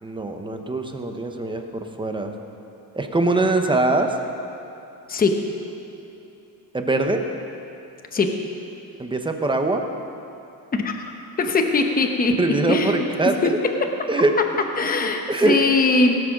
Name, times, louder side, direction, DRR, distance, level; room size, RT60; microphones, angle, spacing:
voice 1, 0.0-2.3 2.9-4.1 6.7-7.2 9.0-9.8 12.4-13.6 14.1-14.3 15.3-15.6, right 2 dB, 15° right, 5 dB, 0.7 m, -22 dB
voice 2, 10.7-11.1 11.4-13.0 14.8-16.2, left 3 dB, 25° left, 4 dB, 0.9 m, -21 dB
18.0 x 7.6 x 6.0 m, 2.9 s
cardioid pair, 170°, 38 cm